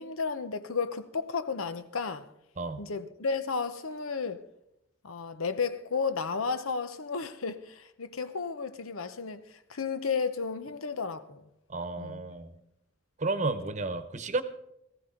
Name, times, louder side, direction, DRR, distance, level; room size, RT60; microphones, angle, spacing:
voice 1, 0.0-2.3 2.8-4.4 5.0-11.4 12.0-12.2, left 5 dB, 90° left, 0.9 m, -33 dB
voice 2, 11.7-12.5 13.2-14.4, right 3 dB, 35° right, 1.0 m, -32 dB
19.0 x 15.5 x 3.9 m
head